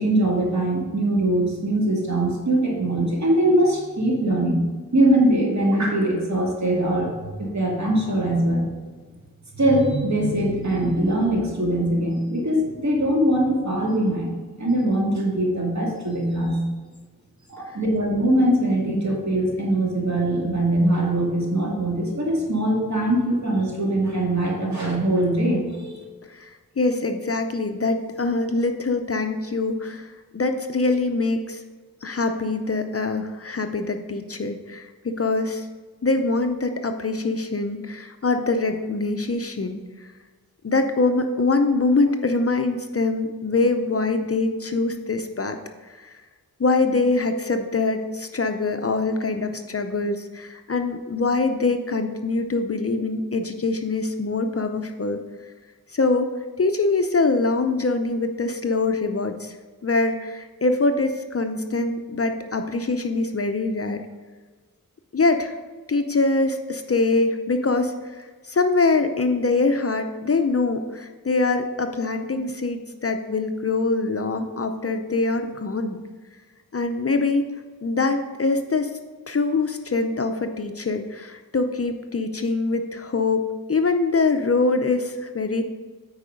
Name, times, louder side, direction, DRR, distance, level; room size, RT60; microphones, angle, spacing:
voice 1, 0.0-8.7 9.6-14.3 14.6-16.6 17.5-26.0, right 1 dB, 50° right, -2 dB, 2.2 m, -22 dB
voice 2, 26.3-31.6 32.0-35.7 36.0-40.1 40.6-45.6 46.0-46.2 46.6-55.2 55.9-56.3 56.6-59.6 59.8-64.0 65.1-65.5 65.9-76.0 76.7-77.4 77.8-78.9 79.3-85.6, left 3 dB, 40° left, 7 dB, 0.6 m, -24 dB
8.9 x 4.6 x 5.1 m, 1.4 s
wide cardioid pair, 70°, 36 cm